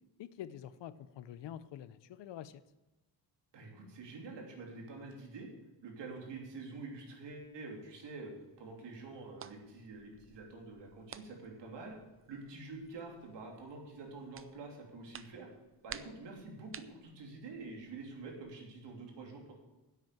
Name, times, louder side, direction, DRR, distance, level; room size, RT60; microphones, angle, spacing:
voice 1, 0.2-2.6, left 10 dB, 85° left, 15 dB, 0.8 m, -47 dB
voice 2, 3.5-5.5 5.8-12.0 12.3-15.5 15.8-19.5, right 3 dB, 80° right, 1 dB, 3.2 m, -47 dB
sound 1, 7.3-18.5, right 8 dB, 30° right, 0.5 m, -55 dB
10.5 x 8.2 x 7.5 m, 1.1 s
wide cardioid pair, 160°, 42 cm